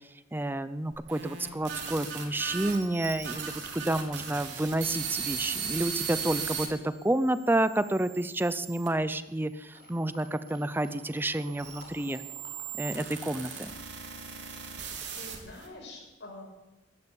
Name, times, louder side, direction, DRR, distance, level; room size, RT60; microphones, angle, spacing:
voice 1, 0.3-12.2 12.8-13.7, right 1 dB, 10° right, 13 dB, 0.5 m, -30 dB
sound 1, 0.9-6.7 7.3-8.9 9.7-15.7, right 7 dB, 80° right, 3.4 m, -38 dB
sound 2, 9.7-13.0 13.2-14.7 15.2-15.3, left 3 dB, 60° left, 6.6 m, -52 dB
voice 2, 15.1-16.4, left 2 dB, 90° left, 1 dB, 6.3 m, -46 dB
15.5 x 13.0 x 7.0 m, 1.0 s
head